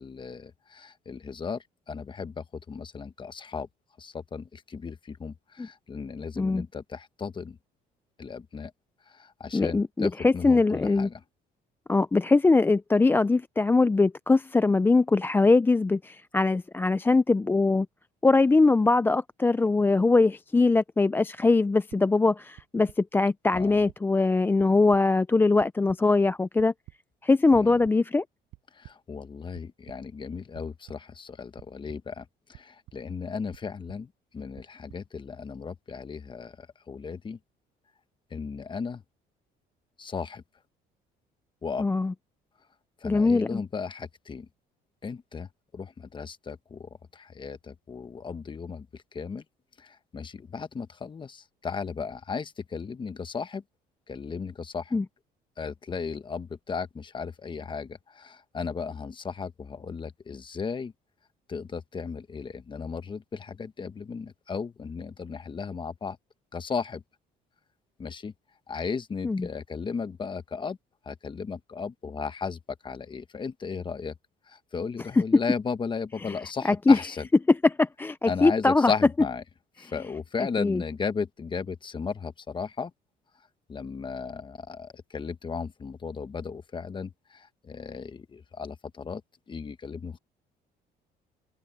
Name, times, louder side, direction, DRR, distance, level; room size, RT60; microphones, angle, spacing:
voice 1, 0.0-3.7 4.0-7.6 8.2-8.7 9.0-11.2 23.5-23.8 27.5-27.8 28.7-37.4 38.3-39.0 40.0-40.4 41.6-41.9 43.0-44.5 45.0-49.4 49.8-53.6 54.1-55.0 55.6-60.9 61.5-66.2 66.5-67.0 68.0-68.3 68.7-70.8 71.0-74.1 74.4-77.3 78.3-79.4 79.8-82.9 83.3-89.2 89.5-90.2, left 5 dB, 30° left, 1.2 m, -35 dB
voice 2, 9.5-11.1 11.9-17.9 18.2-26.7 27.2-28.2 41.8-42.1 43.0-43.6 54.9-55.0 69.2-69.4 76.9-77.0 77.8-78.9 80.6-80.8, left 3 dB, 10° left, 0.4 m, -22 dB
sound 1, 21.9-22.0 22.6-23.0 23.5-24.0 24.3-25.0 25.6-26.0 26.6-27.0 27.5-27.9 28.5-28.9 29.5-30.0 30.5-31.0 31.6-32.0 32.5-33.0 33.5-34.0 34.6-35.0, right 18 dB, 90° right, 4.9 m, -49 dB
cardioid pair, 110°, 17 cm